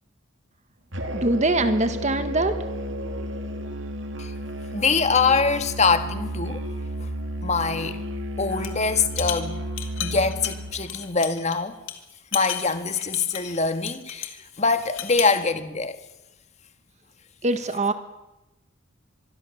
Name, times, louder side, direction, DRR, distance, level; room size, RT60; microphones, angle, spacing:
Musical instrument, 0.9-10.8, equal, 65° right, 2.9 m, -32 dB
voice 1, 1.1-2.6 17.4-17.9, right 2 dB, 35° right, 1.4 m, -23 dB
voice 2, 4.7-6.6 7.0-7.1 7.4-8.0 8.4-9.6 10.0-11.8 12.3-16.0, left 4 dB, 35° left, 1.7 m, -24 dB
sound 1, 8.5-8.8 9.1-11.6 11.9-12.0 12.3-14.4 14.8-15.4, left 11 dB, 80° left, 2.6 m, -33 dB
25.5 x 22.0 x 7.1 m
head